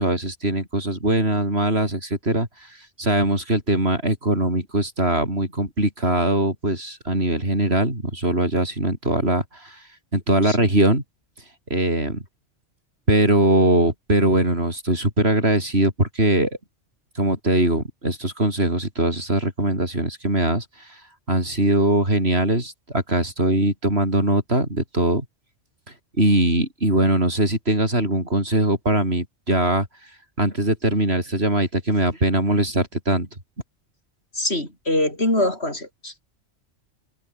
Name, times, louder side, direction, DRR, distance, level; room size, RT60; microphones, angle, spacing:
voice 1, 0.0-2.5 3.0-9.8 10.1-11.0 11.7-12.2 13.1-16.5 17.2-20.9 21.3-25.3 26.2-29.9 30.4-33.3, right 1 dB, 60° right, 7.1 m, -21 dB
voice 2, 34.3-36.2, left 1 dB, 60° left, 7.8 m, -24 dB
omnidirectional pair, 1.2 m